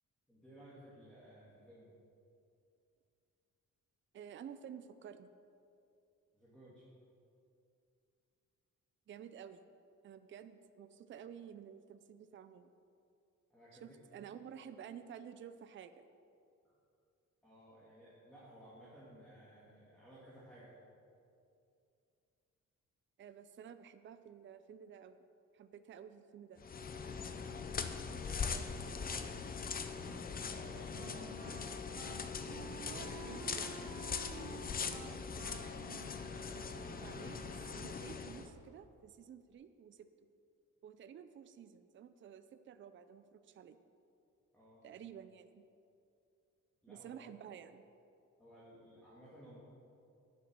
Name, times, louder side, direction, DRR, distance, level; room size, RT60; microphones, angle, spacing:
voice 1, 0.3-1.9 6.3-6.9 13.5-14.2 16.6-16.7 17.4-20.8 27.3-29.6 30.1-31.3 32.6-33.0 34.2-35.3 44.5-44.9 46.8-47.2 48.4-49.6, right 1 dB, 5° left, -9 dB, 1.8 m, -57 dB
voice 2, 4.1-5.3 9.1-9.6 10.0-12.7 13.8-16.1 23.2-25.2 25.5-26.6 32.9-33.9 36.5-40.1 40.8-43.8 44.8-45.6 46.9-47.8, right 8 dB, 40° right, 11 dB, 0.4 m, -52 dB
sound 1, 26.6-38.5, left 5 dB, 30° left, 0.5 m, -41 dB
Wind instrument woodwind instrument, 29.9-37.4, right 6 dB, 75° right, 0.9 m, -53 dB
10.0 x 7.9 x 6.1 m, 2.5 s
wide cardioid pair, 170°, 31 cm